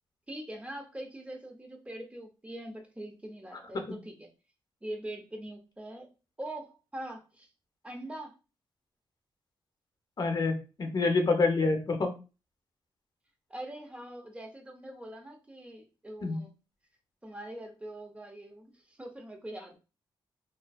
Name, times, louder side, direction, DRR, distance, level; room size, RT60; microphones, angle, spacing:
voice 1, 0.3-4.3 4.8-6.1 6.4-7.5 7.8-8.3 13.5-16.5 17.2-19.8, right 1 dB, 15° right, 4 dB, 0.7 m, -43 dB
voice 2, 10.2-12.1 16.2-16.4, left 3 dB, 45° left, 4 dB, 0.7 m, -27 dB
2.5 x 2.2 x 2.3 m, 0.31 s
cardioid pair, 80°, 9 cm